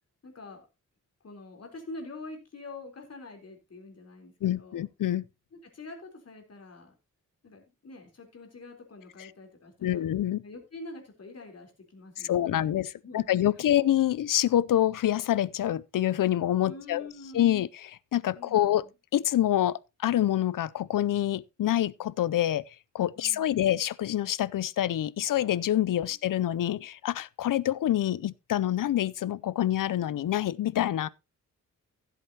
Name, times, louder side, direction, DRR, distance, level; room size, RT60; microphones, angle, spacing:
voice 1, 0.2-0.7 1.2-4.9 5.5-6.9 7.4-10.1 10.4-13.4 16.6-17.7 18.3-18.9 23.1-23.7 26.1-26.2, left 2 dB, 50° left, 3.7 m, -46 dB
voice 2, 4.4-5.2 9.8-10.4 12.2-17.1 17.3-18.8 19.1-22.6 22.9-31.1, left 12 dB, 80° left, 0.5 m, -26 dB
15.5 x 8.2 x 2.8 m
wide cardioid pair, 155°, 32 cm